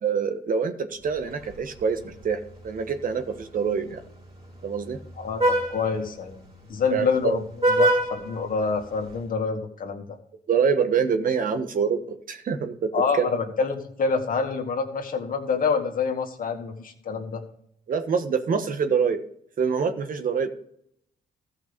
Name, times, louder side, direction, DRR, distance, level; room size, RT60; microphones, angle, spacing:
voice 1, 0.0-4.0 4.6-5.0 6.9-7.4 10.5-12.9 13.2-13.3 17.9-19.2 19.6-20.5, right 6 dB, 60° right, 7 dB, 1.4 m, -25 dB
Vehicle horn car horn honking, 1.1-9.2, right 1 dB, 35° right, 3.3 m, -29 dB
voice 2, 5.2-6.4 6.7-7.4 7.7-10.2 12.9-17.4, left 5 dB, 60° left, 3 dB, 2.1 m, -27 dB
14.0 x 5.8 x 5.3 m, 0.69 s
cardioid pair, 70°, 16 cm